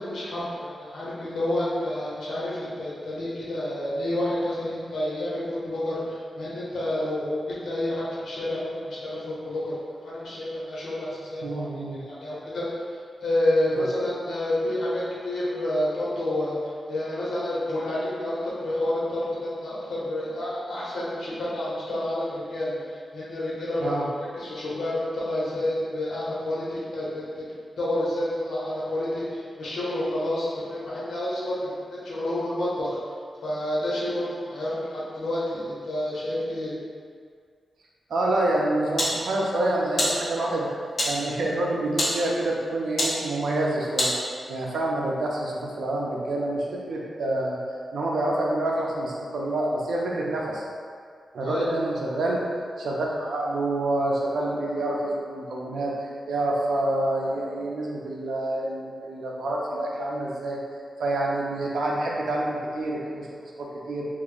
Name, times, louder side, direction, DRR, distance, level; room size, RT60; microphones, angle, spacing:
voice 1, 0.0-11.6 12.1-12.6 13.2-16.6 16.9-24.0 24.4-27.5 27.8-33.0 33.4-36.7 51.4-51.6, left 1 dB, 75° left, -8 dB, 1.1 m, -29 dB
voice 2, 11.4-12.0 13.7-13.8 23.8-24.1 38.1-40.7 41.0-44.1 44.5-47.6 47.9-50.6 51.3-52.4 52.8-60.6 61.0-64.1, right 1 dB, 75° right, -2 dB, 0.6 m, -27 dB
sound 1, 38.4-44.7, left 1 dB, 45° left, 0.7 m, -31 dB
2.9 x 2.5 x 3.9 m, 2.1 s
wide cardioid pair, 140°, 0 cm